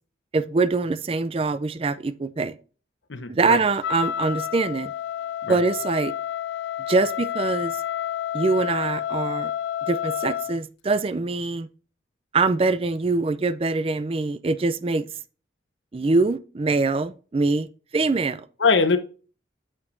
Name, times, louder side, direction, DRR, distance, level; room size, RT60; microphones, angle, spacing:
voice 1, 0.3-2.5 3.3-4.9 5.5-6.1 6.9-7.8 8.3-9.5 9.9-11.7 12.3-15.1 15.9-17.7 17.9-18.5, right 3 dB, 30° right, 0.4 m, -23 dB
voice 2, 3.1-3.6 5.5-5.6 18.6-19.0, left 4 dB, 90° left, 1.0 m, -21 dB
Wind instrument woodwind instrument, 3.8-10.6, left 10 dB, 70° left, 0.3 m, -30 dB
8.6 x 6.7 x 2.6 m
head